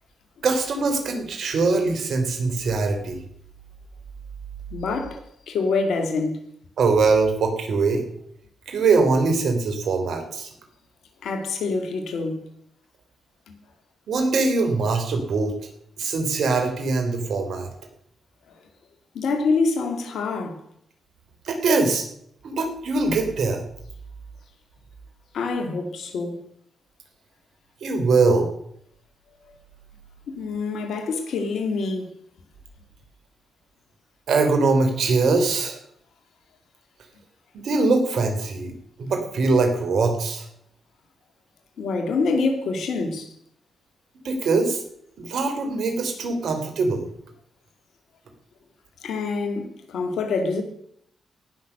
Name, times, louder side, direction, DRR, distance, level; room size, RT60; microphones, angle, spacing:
voice 1, 0.4-3.2 6.8-8.0 8.7-10.5 14.1-15.7 16.0-17.7 21.4-22.0 22.4-23.6 27.8-28.5 34.3-35.8 37.5-38.7 39.0-40.4 44.2-44.8 45.2-47.1, right 3 dB, 70° right, 3.1 m, -22 dB
voice 2, 4.7-6.4 11.2-12.5 13.5-13.6 19.1-20.6 25.3-26.4 30.3-32.1 41.8-43.3 49.0-50.6, left 4 dB, 75° left, 2.2 m, -26 dB
17.5 x 6.4 x 6.6 m
supercardioid pair, 50°, 0 cm